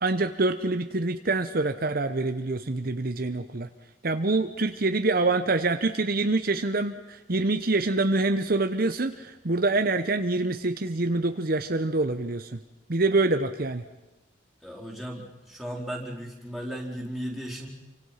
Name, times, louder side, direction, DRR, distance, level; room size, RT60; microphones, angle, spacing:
voice 1, 0.0-3.7 4.0-12.6 12.9-13.8, right 2 dB, 50° right, 8 dB, 0.9 m, -26 dB
voice 2, 14.6-17.7, equal, ahead, -2 dB, 4.1 m, -36 dB
28.5 x 25.0 x 5.8 m, 1.0 s
head